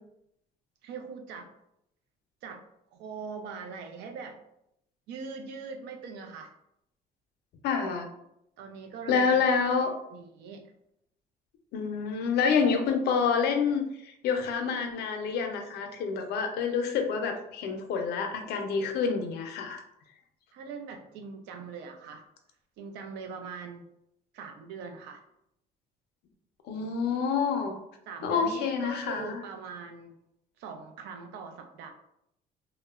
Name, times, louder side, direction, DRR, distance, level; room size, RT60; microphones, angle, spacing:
voice 1, 0.8-1.5 2.4-2.6 2.9-4.4 5.1-6.5 8.6-9.4 10.1-10.7 20.5-22.2 22.8-23.8 24.3-25.2 28.1-30.1 30.6-31.9, right 5 dB, 85° right, 5 dB, 0.5 m, -41 dB
voice 2, 7.6-8.1 9.1-9.9 11.7-19.8 26.7-27.8 28.2-29.4, left 6 dB, 70° left, 5 dB, 0.5 m, -28 dB
2.9 x 2.1 x 2.3 m, 0.78 s
cardioid pair, 110°, 17 cm